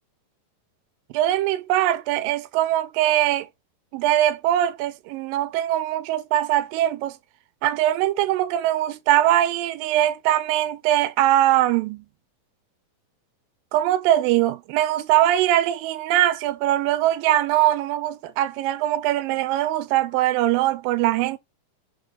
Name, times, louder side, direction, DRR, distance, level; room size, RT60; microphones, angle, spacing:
voice 1, 1.1-3.5 3.9-7.1 7.6-12.0 13.7-21.4, right 13 dB, 85° right, 2.3 m, -21 dB
5.4 x 3.7 x 5.3 m
omnidirectional pair, 4.0 m